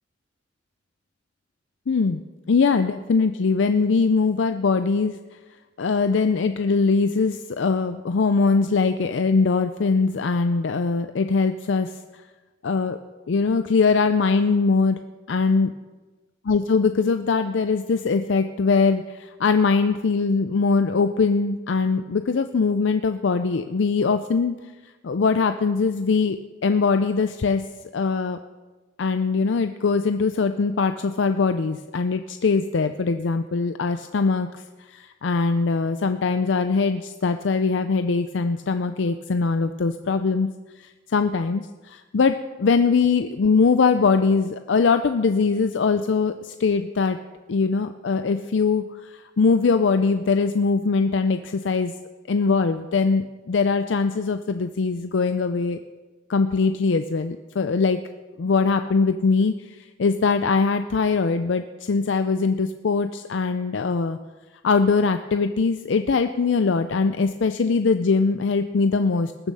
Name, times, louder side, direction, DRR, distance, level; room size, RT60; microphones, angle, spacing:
voice 1, 1.9-5.2 5.8-12.0 12.6-13.0 13.3-15.0 15.3-15.7 16.4-24.6 25.0-27.6 27.9-28.4 29.0-40.5 40.8-47.2 47.5-51.9 52.3-55.8 56.3-58.0 58.4-64.2 64.6-69.3, left 4 dB, 75° left, 9 dB, 0.5 m, -22 dB
20.5 x 7.2 x 5.5 m, 1.3 s
head